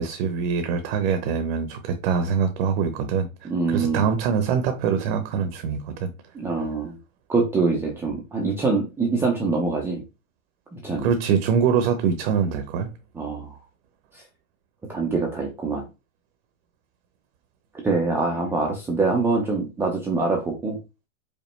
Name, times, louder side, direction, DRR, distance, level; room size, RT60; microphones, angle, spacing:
voice 1, 0.0-3.3 3.7-6.1 11.0-12.9, right 6 dB, 50° right, 0.7 m, -24 dB
voice 2, 3.5-4.1 6.3-7.0 7.3-10.0 10.7-11.1 13.1-13.6 14.1-14.2 14.9-15.8 17.8-20.8, right 3 dB, 5° right, 0.4 m, -24 dB
5.2 x 2.1 x 3.0 m
hypercardioid pair, 115°, 41 cm